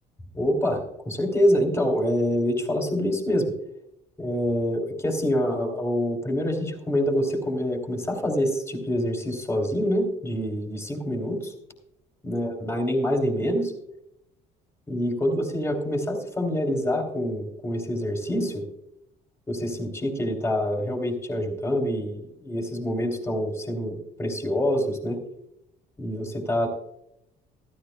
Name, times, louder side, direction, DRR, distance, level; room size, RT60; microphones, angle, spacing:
voice 1, 0.3-3.5 4.2-11.5 12.2-13.7 14.9-18.7 19.5-25.2 26.0-26.7, equal, 15° left, 1 dB, 3.0 m, -26 dB
15.0 x 14.0 x 2.2 m, 0.80 s
cardioid pair, 110°, 17 cm